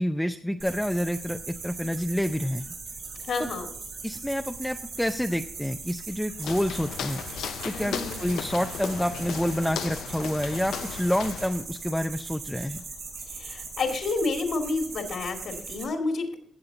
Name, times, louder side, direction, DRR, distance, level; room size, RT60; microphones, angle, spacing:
voice 1, 0.0-2.7 3.4-3.5 4.0-7.2 7.6-12.8, equal, 5° left, 6 dB, 0.5 m, -28 dB
sound 1, 0.6-15.8, right 4 dB, 70° right, 4.7 m, -40 dB
voice 2, 3.2-3.7 7.7-8.3 13.3-16.4, left 3 dB, 70° left, 3 dB, 2.1 m, -30 dB
Walk footsteps, 6.4-11.7, left 9 dB, 90° left, 0.5 m, -36 dB
16.0 x 7.4 x 3.9 m, 0.67 s
cardioid pair, 105°, 0 cm